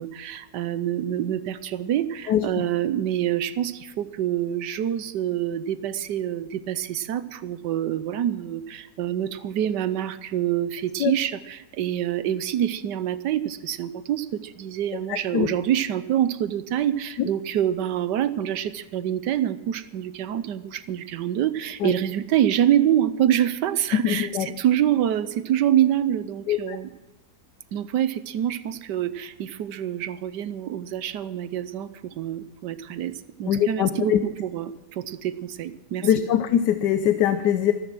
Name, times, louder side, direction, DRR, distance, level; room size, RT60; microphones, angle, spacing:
voice 1, 0.0-26.9 27.7-36.1, right 11 dB, 90° right, 14 dB, 1.4 m, -26 dB
voice 2, 15.1-15.5 17.2-17.3 21.8-21.9 23.9-24.5 26.5-26.8 33.5-34.2 36.0-37.7, left 10 dB, 85° left, 10 dB, 1.3 m, -22 dB
14.0 x 13.5 x 6.2 m, 1.0 s
omnidirectional pair, 1.8 m